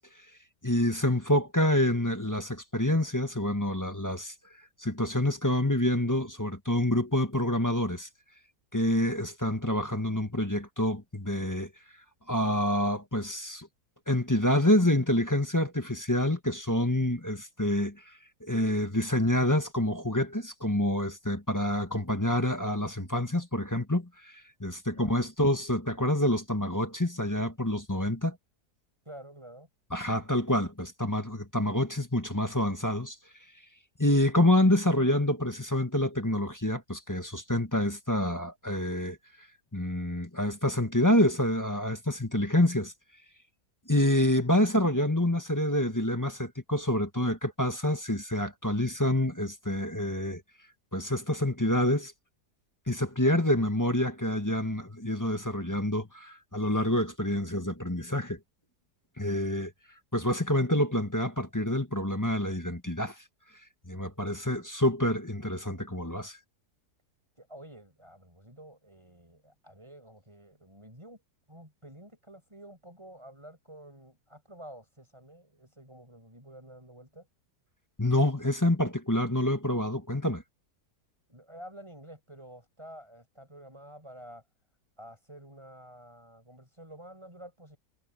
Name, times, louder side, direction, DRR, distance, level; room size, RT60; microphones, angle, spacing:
voice 1, 0.6-4.3 4.8-8.1 8.7-11.7 12.3-13.7 14.1-28.4 29.9-33.2 34.0-39.5 39.7-42.9 43.9-50.4 50.9-52.1 52.9-58.4 59.2-59.7 60.1-63.2 63.9-66.4 78.0-80.4, left 1 dB, 10° left, 1.7 m, -27 dB
voice 2, 24.9-25.3 29.0-29.7 67.4-71.2 71.5-77.3 81.3-84.4 85.0-87.8, right 1 dB, 15° right, 6.8 m, -49 dB
omnidirectional pair, 1.7 m